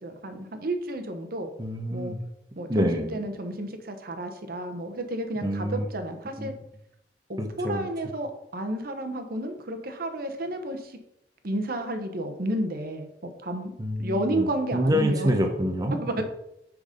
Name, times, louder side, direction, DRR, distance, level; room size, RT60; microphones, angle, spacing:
voice 1, 0.0-1.5 1.9-2.1 2.6-6.5 7.3-11.0 11.4-13.7 14.0-15.3 16.0-16.2, right 1 dB, 55° right, 7 dB, 0.9 m, -31 dB
voice 2, 1.6-2.2 2.7-3.2 5.4-5.9 6.4-6.5 7.4-7.9 13.8-16.2, equal, 20° right, 3 dB, 0.7 m, -27 dB
6.2 x 5.1 x 5.0 m, 0.82 s
head